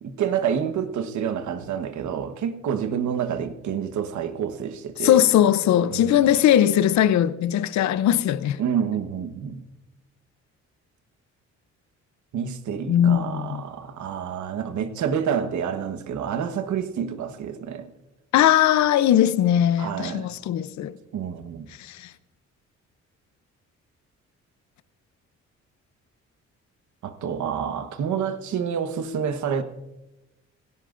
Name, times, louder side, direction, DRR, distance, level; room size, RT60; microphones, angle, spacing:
voice 1, 0.0-5.2 5.9-6.3 8.6-9.6 12.3-17.9 19.8-20.3 21.1-21.7 27.0-29.6, right 8 dB, 70° right, 1.3 m, -28 dB
voice 2, 5.0-8.6 12.9-13.6 18.3-21.0 21.8-22.1, left 11 dB, 70° left, 0.6 m, -20 dB
17.0 x 16.5 x 2.6 m
cardioid pair, 90°, 30 cm